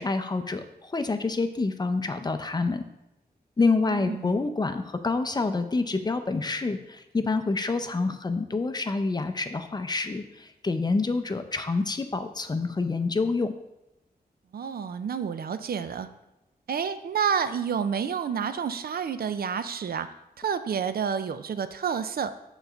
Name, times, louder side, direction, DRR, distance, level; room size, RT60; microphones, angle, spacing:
voice 1, 0.0-2.8 3.6-13.5, left 3 dB, 25° left, 8 dB, 0.5 m, -27 dB
voice 2, 3.9-4.5 14.5-16.1 16.7-20.1 20.4-22.3, right 7 dB, 70° right, 11 dB, 0.5 m, -29 dB
7.0 x 4.0 x 5.6 m, 0.93 s
wide cardioid pair, 120°, 16 cm